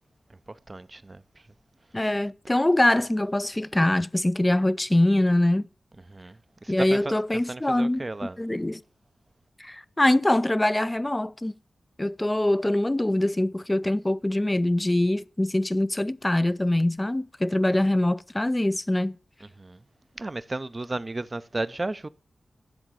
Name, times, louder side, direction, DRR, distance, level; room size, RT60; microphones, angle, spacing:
voice 1, 0.7-1.2 6.1-7.2 7.5-8.4 19.6-19.8 20.2-22.1, right 2 dB, 35° right, 0.5 m, -33 dB
voice 2, 1.9-5.7 6.7-8.1 8.4-8.8 9.6-11.6 12.0-19.2, left 1 dB, 20° left, 0.4 m, -23 dB
9.6 x 3.9 x 6.1 m
cardioid pair, 55°, 0 cm